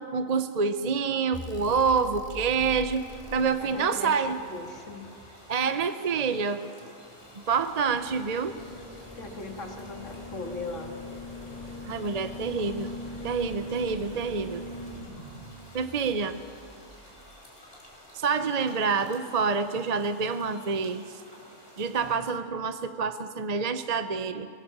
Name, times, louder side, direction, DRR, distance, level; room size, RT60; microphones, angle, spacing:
voice 1, 0.0-3.0 3.3-4.4 5.5-6.7 7.5-8.6 11.8-12.9 13.2-14.6 15.7-16.4 18.1-21.2 21.8-24.5, right 5 dB, 40° right, 10 dB, 0.7 m, -27 dB
sound 1, 1.3-5.5 6.8-18.0 19.5-19.6, left 1 dB, 30° left, 2.8 m, -42 dB
sound 2, 2.9-22.2, equal, 50° left, 4.8 m, -52 dB
voice 2, 3.6-5.1 9.2-10.9, left 2 dB, 70° left, 3 dB, 2.4 m, -39 dB
21.5 x 19.0 x 7.3 m, 2.6 s
omnidirectional pair, 1.3 m